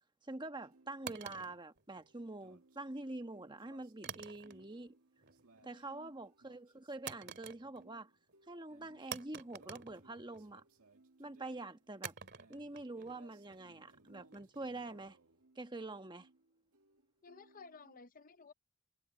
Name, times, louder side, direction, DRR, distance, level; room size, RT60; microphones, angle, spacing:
voice 1, 0.2-4.9 5.6-8.1 8.5-10.6 11.2-12.1 12.5-15.2 15.6-16.3, right 2 dB, 20° right, 1.2 m, -46 dB
sound 1, 0.6-18.0, right 3 dB, 85° right, 2.0 m, -66 dB
sound 2, 1.1-2.5 4.0-4.9 5.2-5.6 7.1-8.0 8.3-8.4 9.1-10.6 12.0-15.0, right 7 dB, 50° right, 2.6 m, -49 dB
voice 2, 5.6-6.1 17.2-18.5, left 4 dB, 40° left, 0.7 m, -56 dB
head